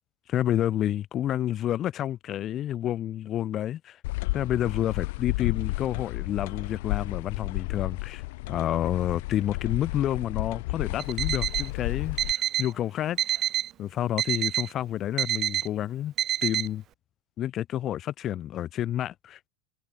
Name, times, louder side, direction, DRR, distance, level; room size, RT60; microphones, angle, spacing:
voice 1, 0.3-4.0 4.3-13.5 13.8-16.1 16.4-16.8 17.4-19.4, left 12 dB, 35° left, 3.7 m, -29 dB
sound 1, 4.0-12.3, left 22 dB, 65° left, 1.6 m, -32 dB
Alarm, 11.0-11.7 12.2-12.7 13.2-13.7 14.2-14.7 15.2-15.7 16.2-16.7, right 12 dB, 40° right, 3.0 m, -28 dB
hypercardioid pair, 115°, 0 cm